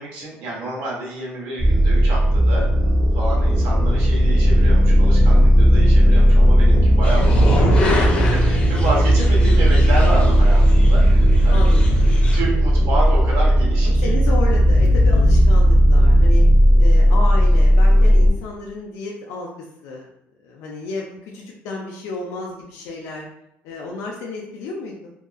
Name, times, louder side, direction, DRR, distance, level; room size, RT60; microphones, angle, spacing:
voice 1, 0.0-2.7 3.1-11.6 12.3-14.1, right 2 dB, 75° right, -3 dB, 1.0 m, -29 dB
sound 1, 1.6-18.3, equal, 25° right, 0.5 m, -15 dB
sound 2, 7.0-12.4, right 1 dB, 25° left, 0.5 m, -23 dB
voice 2, 11.5-12.1 13.8-16.4 16.8-20.1 20.4-23.3 23.6-25.1, left 3 dB, 80° left, -2 dB, 0.4 m, -32 dB
2.7 x 2.3 x 2.4 m, 0.79 s
cardioid pair, 180°, 5 cm